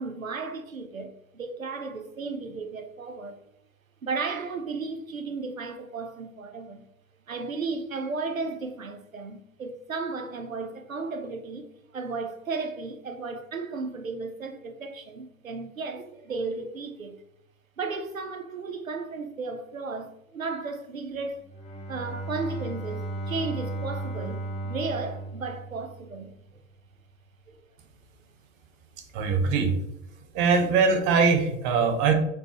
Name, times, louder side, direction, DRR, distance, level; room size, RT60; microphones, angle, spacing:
voice 1, 0.0-3.4 4.0-6.9 7.3-11.7 11.9-17.2 17.8-21.4 21.9-26.3 27.5-27.6, right 4 dB, 90° right, 0.6 m, -34 dB
Bowed string instrument, 21.4-26.3, right 2 dB, 15° left, 0.7 m, -35 dB
voice 2, 29.1-29.7 30.3-32.1, right 5 dB, 45° right, 1.0 m, -22 dB
5.2 x 3.4 x 3.0 m
figure-of-eight pair, 75°, 39 cm